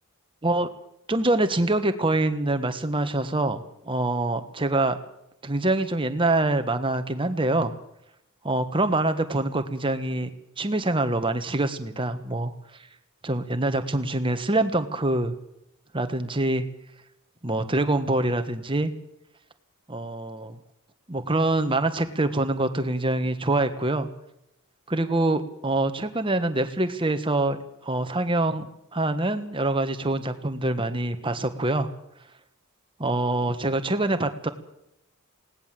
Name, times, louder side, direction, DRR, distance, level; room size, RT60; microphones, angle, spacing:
voice 1, 1.1-5.0 5.4-7.7 8.4-10.3 10.6-12.5 13.2-15.3 15.9-16.6 17.4-18.9 19.9-20.6 21.1-24.1 24.9-31.9 33.0-34.5, right 2 dB, 25° right, 9 dB, 1.5 m, -25 dB
20.0 x 18.0 x 7.7 m, 0.81 s
head